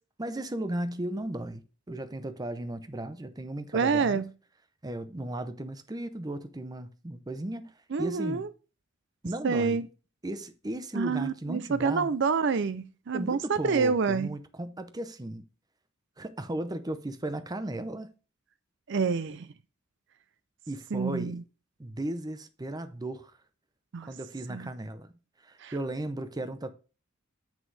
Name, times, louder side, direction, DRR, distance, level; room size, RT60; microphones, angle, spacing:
voice 1, 0.2-4.2 4.8-8.5 9.2-9.8 10.2-12.1 13.1-15.4 16.2-18.1 20.7-21.4 21.8-23.3 24.1-25.1 25.4-26.7, right 1 dB, 20° right, 0.6 m, -36 dB
voice 2, 3.7-4.3 7.9-8.5 9.4-9.8 10.9-14.3 18.9-19.5 20.9-21.4 23.9-24.1 24.5-24.7 25.6-25.7, right 5 dB, 60° right, 0.5 m, -27 dB
7.4 x 6.2 x 3.3 m
head